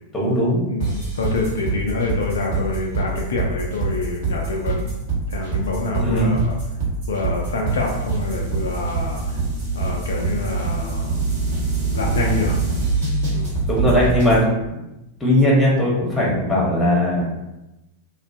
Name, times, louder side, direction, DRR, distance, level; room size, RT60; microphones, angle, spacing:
voice 1, 0.1-0.6 6.0-6.3 13.7-14.4 15.2-17.2, left 1 dB, 15° left, -4 dB, 0.8 m, -18 dB
voice 2, 0.7-4.9 5.3-6.6 7.1-9.4 9.7-11.2 11.9-12.6 13.3-13.5, left 3 dB, 65° left, 0 dB, 0.3 m, -26 dB
sound 1, 0.8-14.4, right 4 dB, 55° right, 0.9 m, -24 dB
2.4 x 2.2 x 2.4 m, 0.95 s
figure-of-eight pair, 90°, 0 cm